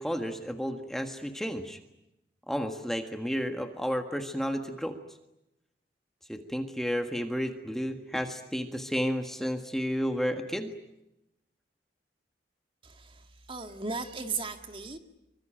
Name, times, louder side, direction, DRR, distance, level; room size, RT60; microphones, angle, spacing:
voice 1, 0.0-1.8 2.5-5.0 6.3-10.7, equal, ahead, 5 dB, 1.6 m, -32 dB
voice 2, 12.8-13.2 13.5-15.0, right 4 dB, 30° right, 6 dB, 2.0 m, -36 dB
24.5 x 24.5 x 9.0 m, 0.89 s
head